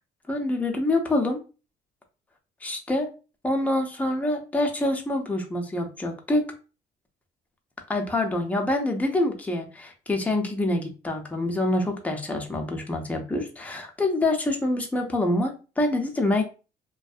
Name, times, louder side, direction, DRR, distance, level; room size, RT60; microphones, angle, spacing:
voice 1, 0.3-1.4 2.6-3.1 3.4-6.5 7.9-16.4, left 1 dB, 10° left, 2 dB, 0.5 m, -26 dB
2.5 x 2.3 x 2.4 m, 0.33 s
cardioid pair, 110°, 17 cm